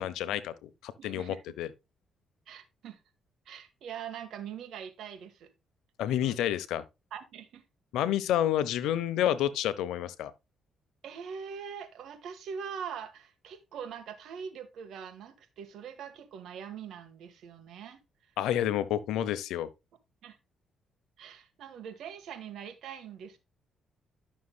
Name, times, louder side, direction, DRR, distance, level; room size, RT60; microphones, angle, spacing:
voice 1, 0.0-1.7 6.0-6.8 7.9-10.3 18.4-19.7, left 11 dB, 90° left, 0.8 m, -29 dB
voice 2, 1.0-1.4 2.5-3.0 3.4-5.5 6.2-6.4 7.1-7.6 11.0-18.0 20.2-20.4 21.2-23.4, right 7 dB, 75° right, 1.5 m, -42 dB
11.5 x 6.4 x 2.2 m
cardioid pair, 90°, 0 cm